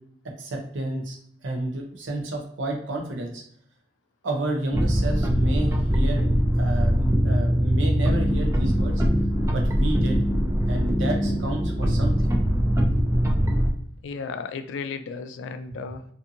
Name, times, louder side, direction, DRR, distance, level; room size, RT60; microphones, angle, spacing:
voice 1, 0.4-3.4 4.2-6.3 6.5-9.0 9.5-10.2 10.7-12.3, right 1 dB, 90° right, 1 dB, 0.6 m, -30 dB
sound 1, 4.7-13.7, equal, 15° right, 0.4 m, -22 dB
voice 2, 14.0-16.0, left 5 dB, 85° left, 10 dB, 0.3 m, -34 dB
2.6 x 2.6 x 2.5 m, 0.65 s
head